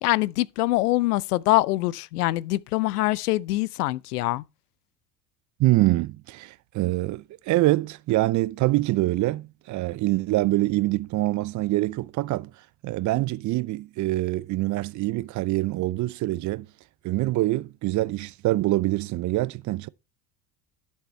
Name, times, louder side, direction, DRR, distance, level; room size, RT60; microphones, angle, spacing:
voice 1, 0.0-4.4, left 18 dB, 75° left, 0.7 m, -24 dB
voice 2, 5.6-12.5 12.8-16.7 17.0-19.9, right 18 dB, 40° right, 0.6 m, -25 dB
11.0 x 6.5 x 4.3 m
hypercardioid pair, 75°, 46 cm